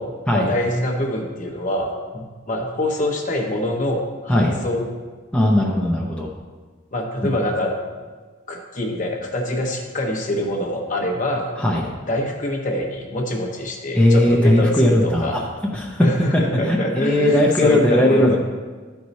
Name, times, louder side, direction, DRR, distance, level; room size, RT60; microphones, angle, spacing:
voice 1, 0.0-4.9 6.9-7.7 8.5-11.5 12.1-15.4 16.0-18.4, left 1 dB, 40° left, 1 dB, 1.1 m, -25 dB
voice 2, 5.3-6.3 11.6-11.9 13.9-15.4 15.7-16.0 16.6-18.4, left 1 dB, 5° left, -3 dB, 0.7 m, -18 dB
12.0 x 4.7 x 4.1 m, 1.4 s
head